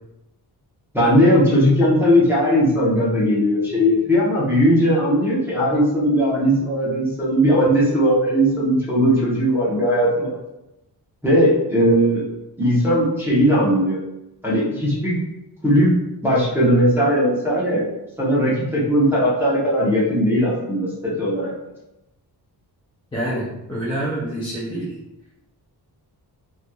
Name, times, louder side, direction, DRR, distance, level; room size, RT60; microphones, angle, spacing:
voice 1, 0.9-10.4 11.2-12.2 12.6-14.0 14.4-15.1 15.6-15.9 16.2-17.8 18.2-21.5, equal, 5° right, -9 dB, 0.7 m, -18 dB
voice 2, 23.1-24.9, right 1 dB, 15° left, -7 dB, 0.4 m, -27 dB
2.9 x 2.4 x 2.2 m, 0.92 s
wide cardioid pair, 155°, 40 cm